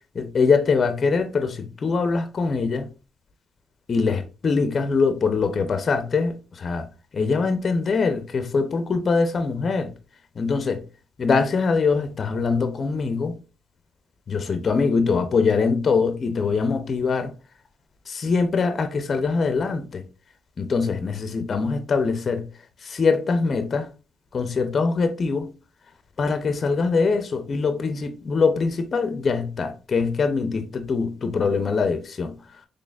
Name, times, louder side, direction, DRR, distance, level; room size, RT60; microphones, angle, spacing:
voice 1, 0.1-2.9 3.9-6.9 7.1-9.9 10.4-10.8 11.2-13.3 14.3-17.3 18.1-20.0 20.6-22.4 22.8-23.9 24.3-25.5 26.2-32.3, left 4 dB, 45° left, 0.5 m, -23 dB
3.9 x 3.3 x 2.3 m
cardioid pair, 90°, 0 cm